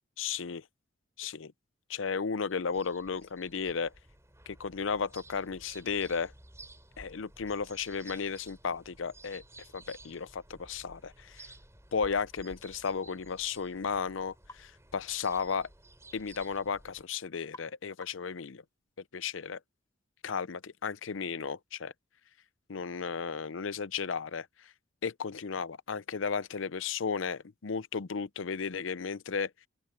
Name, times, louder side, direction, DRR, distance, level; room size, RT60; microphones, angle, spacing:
voice 1, 0.2-0.6 1.2-1.5 1.9-3.9 4.5-6.3 7.0-9.4 9.7-11.5 11.9-15.7 16.1-18.6 19.1-19.6 20.2-21.9 22.7-24.7 25.0-29.5, left 5 dB, 70° left, 0.6 m, -34 dB
sound 1, 2.5-17.0, right 2 dB, 15° right, 7.1 m, -54 dB
sound 2, 14.5-14.7 15.4-15.6 17.5-17.8 18.0-18.3, left 2 dB, 15° left, 1.4 m, -49 dB
open air
head